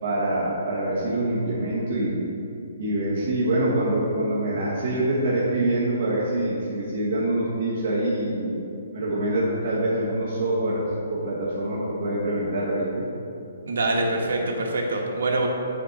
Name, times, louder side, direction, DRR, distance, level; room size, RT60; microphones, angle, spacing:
voice 1, 0.0-2.2 2.8-8.6 8.9-13.0, right 1 dB, 40° right, -7 dB, 1.1 m, -25 dB
voice 2, 13.7-15.5, right 2 dB, 70° right, 0 dB, 1.1 m, -24 dB
8.3 x 3.9 x 4.0 m, 2.8 s
hypercardioid pair, 175°, 0 cm